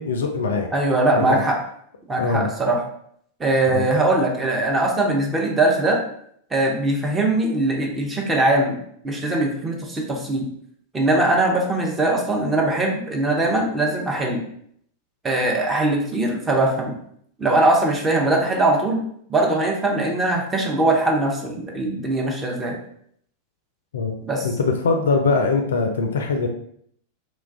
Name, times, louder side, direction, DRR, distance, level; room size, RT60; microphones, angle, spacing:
voice 1, 0.0-0.7 1.1-1.4 2.2-2.5 3.7-3.8 23.9-24.1 24.4-26.5, left 4 dB, 65° left, 5 dB, 0.3 m, -22 dB
voice 2, 0.7-1.6 2.1-2.8 3.4-6.0 6.5-8.8 9.0-10.4 10.9-14.4 15.2-16.9 17.4-19.0 19.3-22.8 24.2-24.5, right 2 dB, 15° right, -1 dB, 0.6 m, -21 dB
3.0 x 2.2 x 2.4 m, 0.67 s
figure-of-eight pair, 90°, 0 cm